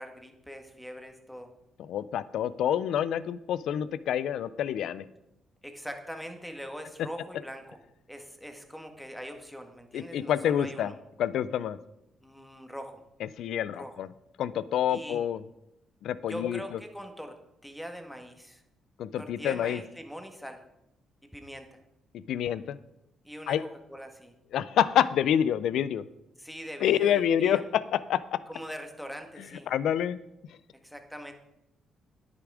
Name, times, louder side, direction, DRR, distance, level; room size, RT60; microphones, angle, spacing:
voice 1, 0.0-1.5 5.6-7.8 8.1-10.9 12.2-13.0 13.7-14.0 14.9-15.2 16.3-17.4 17.6-18.6 19.2-20.6 21.3-21.8 23.2-23.6 23.9-24.4 26.4-27.6 28.5-29.7 30.8-31.3, equal, ahead, 5 dB, 1.7 m, -42 dB
voice 2, 1.9-5.0 9.9-10.9 11.2-11.8 13.4-14.1 14.4-15.4 16.0-16.8 19.0-19.8 22.1-22.8 23.5-23.6 24.5-26.1 26.8-28.4 29.7-30.2, left 10 dB, 75° left, 17 dB, 0.5 m, -27 dB
10.0 x 9.7 x 4.9 m, 0.85 s
cardioid pair, 90°, 0 cm